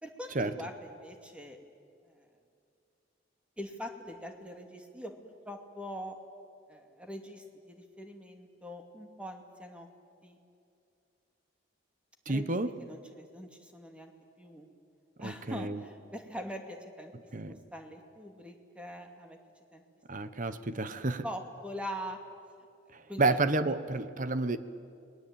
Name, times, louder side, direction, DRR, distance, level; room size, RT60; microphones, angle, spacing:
voice 1, 0.0-1.6 2.1-2.2 3.6-5.1 5.4-6.2 6.7-9.9 10.2-10.4 12.3-12.4 12.8-14.1 14.4-14.7 15.2-17.1 17.4-19.4 19.7-19.8 20.2-20.5 21.2-22.2 23.1-23.4, equal, 5° right, 4 dB, 2.5 m, -43 dB
voice 2, 12.3-12.7 15.2-15.8 17.3-17.6 20.1-21.2 22.9-24.6, right 2 dB, 45° right, 12 dB, 1.1 m, -30 dB
29.5 x 21.0 x 8.9 m, 2.5 s
head